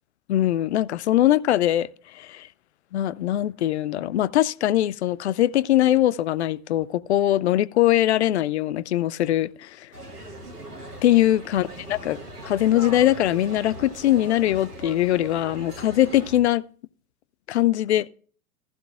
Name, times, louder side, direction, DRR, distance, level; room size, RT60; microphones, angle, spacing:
voice 1, 0.3-2.5 2.9-9.9 11.0-12.2 12.4-16.6 17.5-18.1, left 13 dB, 50° left, 0.4 m, -22 dB
sound 1, 9.9-16.4, right 1 dB, 90° right, 1.8 m, -39 dB
15.0 x 11.5 x 2.3 m
figure-of-eight pair, 95°, 46 cm